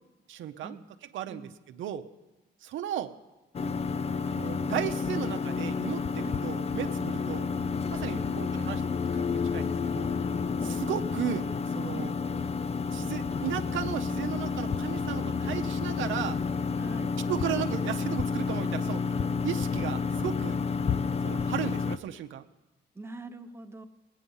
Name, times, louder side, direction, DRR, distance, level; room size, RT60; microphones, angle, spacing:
voice 1, 0.3-0.8 1.1-2.0 2.6-3.1 4.2-7.4 7.9-8.8 9.1-10.1 10.8-11.5 11.7-12.1 12.9-16.4 17.3-19.0 19.4-20.6 21.2-22.4, right 10 dB, 75° right, 7 dB, 0.7 m, -35 dB
sound 1, 3.5-22.0, left 5 dB, 30° left, 0.4 m, -30 dB
voice 2, 16.8-17.2 22.9-23.8, right 2 dB, 10° right, 5 dB, 0.9 m, -43 dB
18.5 x 9.2 x 5.5 m, 1.1 s
cardioid pair, 90°, 20 cm